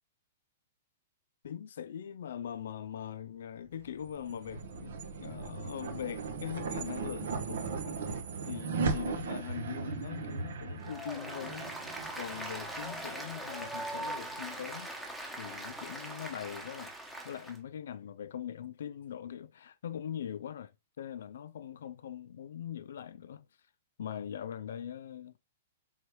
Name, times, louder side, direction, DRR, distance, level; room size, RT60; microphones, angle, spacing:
voice 1, 1.4-8.0 8.4-11.7 12.1-14.9 15.4-16.9 17.2-20.7 21.0-23.5 24.0-25.3, left 9 dB, 70° left, 0.3 m, -42 dB
sound 1, 3.8-14.3, right 4 dB, 70° right, 0.8 m, -38 dB
Applause, 10.8-17.6, right 1 dB, ahead, 1.0 m, -41 dB
3.5 x 3.2 x 3.0 m
hypercardioid pair, 115°, 0 cm